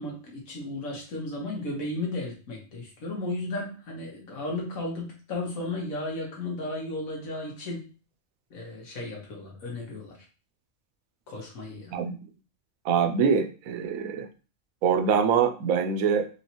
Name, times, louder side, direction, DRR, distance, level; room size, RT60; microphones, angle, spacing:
voice 1, 0.0-7.8 8.5-10.2 11.3-12.0, left 2 dB, 85° left, -1 dB, 1.7 m, -34 dB
voice 2, 12.8-14.3 14.8-16.3, right 6 dB, 85° right, 8 dB, 1.0 m, -24 dB
4.7 x 2.8 x 2.9 m, 0.36 s
omnidirectional pair, 1.4 m